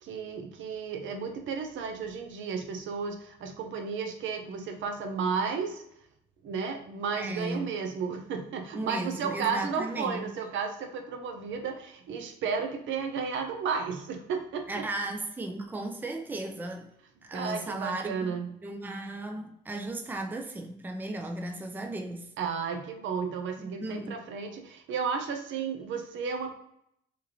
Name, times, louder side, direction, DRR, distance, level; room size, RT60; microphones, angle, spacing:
voice 1, 0.0-5.8 6.4-14.8 17.3-18.5 22.4-26.5, right 5 dB, 70° right, 5 dB, 0.5 m, -33 dB
voice 2, 7.1-7.7 8.7-10.3 14.7-16.9 17.2-22.3 23.8-24.2, right 2 dB, 10° right, 4 dB, 0.4 m, -36 dB
2.9 x 2.5 x 2.7 m, 0.75 s
cardioid pair, 90°, 20 cm